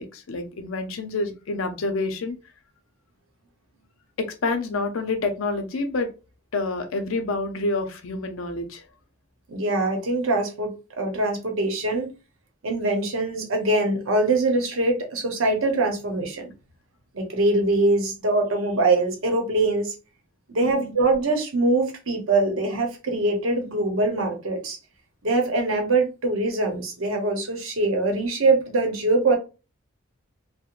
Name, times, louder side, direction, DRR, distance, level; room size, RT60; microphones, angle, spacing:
voice 1, 0.0-2.4 4.2-6.1 6.5-8.9 20.6-20.9, left 3 dB, 75° left, 7 dB, 0.5 m, -28 dB
voice 2, 9.5-12.1 12.6-16.5 17.1-19.9 20.5-24.8 25.2-29.4, right 2 dB, 75° right, 2 dB, 0.8 m, -23 dB
2.4 x 2.1 x 2.9 m, 0.31 s
head